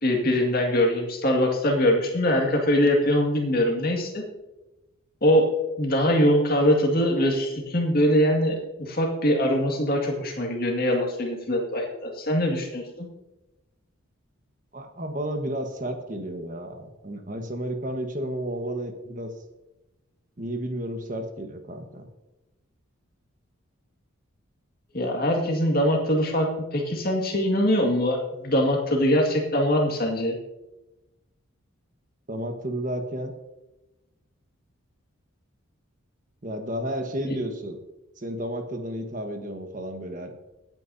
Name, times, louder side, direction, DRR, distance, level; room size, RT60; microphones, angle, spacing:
voice 1, 0.0-4.2 5.2-5.5 5.8-13.1 24.9-30.4 37.2-37.4, equal, 45° left, 1 dB, 2.1 m, -23 dB
voice 2, 14.7-19.3 20.4-22.1 32.3-33.3 36.4-37.8 38.2-40.4, right 1 dB, 40° right, 5 dB, 1.4 m, -32 dB
21.0 x 9.0 x 2.8 m, 1.0 s
head